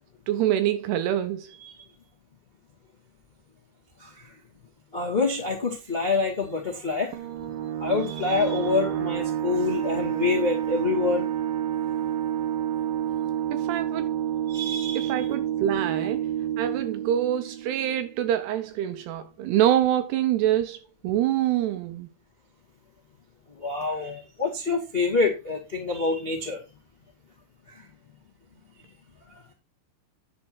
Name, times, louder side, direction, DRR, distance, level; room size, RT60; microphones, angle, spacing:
voice 1, 0.3-1.5 13.5-14.1 15.0-16.3 16.6-22.1, right 11 dB, 80° right, 2.4 m, -25 dB
voice 2, 4.9-7.1 7.8-11.3 14.5-15.2 23.6-26.6, left 4 dB, 65° left, 0.6 m, -26 dB
sound 1, 7.1-18.4, right 11 dB, 65° right, 2.8 m, -29 dB
10.5 x 4.7 x 6.1 m
omnidirectional pair, 5.3 m